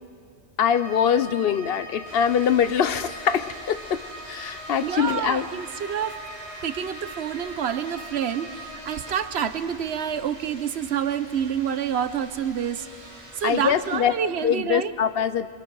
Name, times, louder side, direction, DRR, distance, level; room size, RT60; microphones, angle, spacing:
voice 1, 0.6-5.5 13.4-14.1 14.4-15.5, left 8 dB, 65° left, 12 dB, 0.9 m, -23 dB
Bowed string instrument, 0.7-9.2, right 1 dB, 35° left, 4.6 m, -42 dB
sound 1, 2.0-14.0, right 1 dB, 30° right, 4.0 m, -44 dB
voice 2, 4.8-6.2 6.6-12.9 13.3-14.9, right 8 dB, 75° right, 12 dB, 1.0 m, -28 dB
27.0 x 23.5 x 4.7 m, 2.3 s
omnidirectional pair, 1.1 m